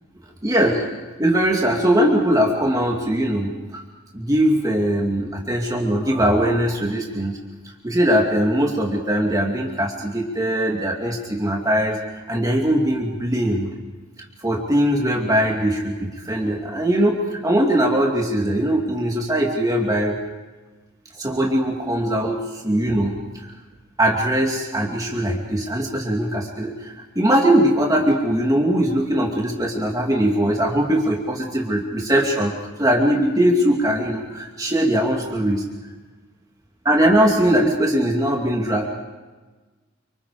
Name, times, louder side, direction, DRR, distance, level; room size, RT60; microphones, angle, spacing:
voice 1, 0.4-0.8 1.2-3.8 4.1-7.4 7.8-12.0 12.3-13.7 14.4-20.2 21.1-22.4 22.6-23.5 24.0-35.6 36.8-38.9, right 1 dB, 20° right, -1 dB, 2.6 m, -20 dB
29.5 x 26.0 x 5.0 m, 1.3 s
head